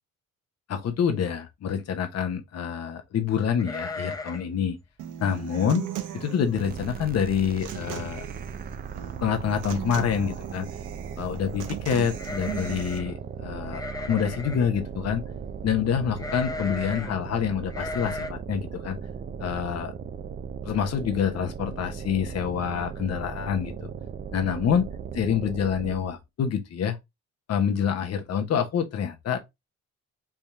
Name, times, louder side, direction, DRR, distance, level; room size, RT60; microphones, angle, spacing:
voice 1, 0.7-4.8 5.2-5.9 6.1-8.3 9.2-10.7 11.2-15.2 15.6-19.0 19.4-19.9 20.6-23.9 24.3-24.9 25.1-27.0 27.5-29.4, left 8 dB, 55° left, 0.9 m, -27 dB
sound 1, 3.6-4.6 4.8-4.9 5.4-5.7 6.2-6.3 6.6-7.1 7.4-7.5 8.6-8.7 9.0-9.5 12.1-13.1 13.7-14.7 16.2-17.1 17.7-18.3, left 3 dB, 10° left, 0.6 m, -36 dB
Human voice / Acoustic guitar, 5.0-13.0, right 11 dB, 85° right, 0.8 m, -39 dB
sound 2, 6.5-26.2, right 7 dB, 30° right, 0.4 m, -37 dB
3.6 x 2.9 x 3.3 m
cardioid pair, 90°, 30 cm